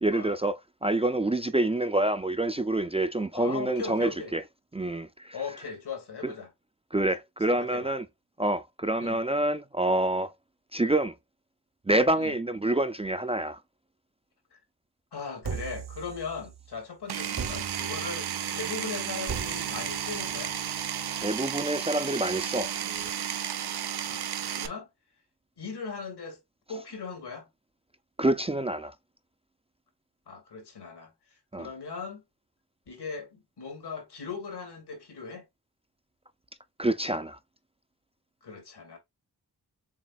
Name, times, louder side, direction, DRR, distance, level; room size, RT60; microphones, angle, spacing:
voice 1, 0.0-4.4 4.7-5.4 6.2-6.3 6.9-8.0 8.4-10.3 10.7-11.1 11.9-13.6 21.2-22.7 28.2-28.9 31.5-31.7 36.8-37.4, right 1 dB, 15° right, 0.5 m, -27 dB
voice 2, 3.3-4.3 5.3-6.5 7.5-7.9 9.0-9.2 12.2-12.4 14.5-14.6 15.1-20.5 24.0-24.9 25.6-26.4 26.7-27.5 30.3-31.1 31.5-32.2 32.9-35.4 38.4-39.0, left 5 dB, 75° left, 2.3 m, -39 dB
sound 1, 15.4-16.8 17.3-23.1, right 5 dB, 55° right, 1.2 m, -41 dB
Power tool, 17.1-24.7, right 9 dB, 75° right, 0.8 m, -33 dB
7.3 x 2.9 x 2.4 m
cardioid pair, 50°, 40 cm